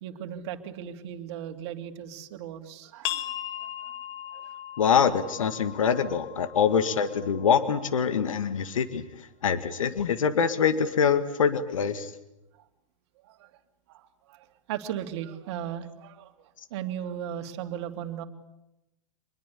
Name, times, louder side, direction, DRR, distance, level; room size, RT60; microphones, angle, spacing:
voice 1, 0.0-3.2 3.6-3.9 4.3-4.5 13.2-13.5 13.9-18.2, right 10 dB, 55° right, 6 dB, 2.8 m, -37 dB
sound 1, 3.0-8.4, left 12 dB, 45° left, 2.2 m, -39 dB
voice 2, 4.8-9.1 9.4-12.1, left 7 dB, 75° left, 11 dB, 2.0 m, -24 dB
26.0 x 21.5 x 8.6 m, 0.90 s
hypercardioid pair, 110°, 17 cm